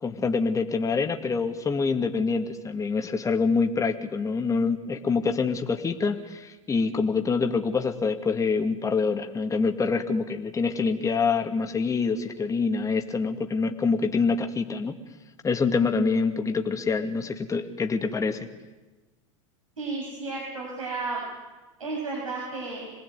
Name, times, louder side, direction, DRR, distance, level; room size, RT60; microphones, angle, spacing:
voice 1, 0.0-15.0 15.4-18.5, left 4 dB, 20° left, 5 dB, 2.3 m, -26 dB
voice 2, 19.8-21.2 21.8-22.9, right 3 dB, 85° right, -3 dB, 7.2 m, -33 dB
26.5 x 19.5 x 9.7 m, 1.2 s
hypercardioid pair, 90°, 17 cm